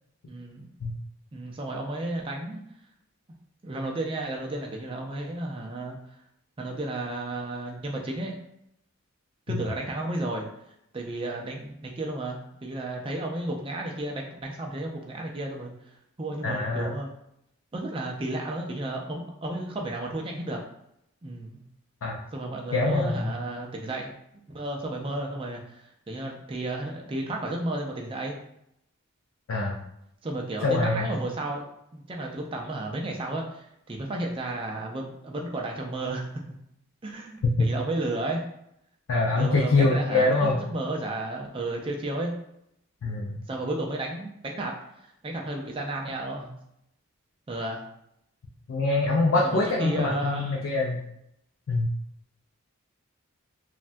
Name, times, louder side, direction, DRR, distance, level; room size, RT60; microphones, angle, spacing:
voice 1, 0.3-0.7 1.3-2.6 3.6-6.0 6.6-8.3 9.5-10.5 10.9-15.7 16.2-17.1 17.7-20.6 21.2-21.6 22.3-24.1 24.5-28.4 30.2-31.6 31.9-36.3 37.0-38.4 39.3-42.3 43.5-46.5 47.5-47.8 49.4-50.4, right 2 dB, 25° right, 0 dB, 0.4 m, -33 dB
voice 2, 16.4-16.9 22.0-22.2 22.7-23.3 29.5-29.8 30.6-31.1 37.4-37.7 39.1-40.6 43.0-43.4 48.7-51.0 51.7-51.9, left 3 dB, 70° left, -2 dB, 0.4 m, -24 dB
3.3 x 2.1 x 2.6 m, 0.77 s
head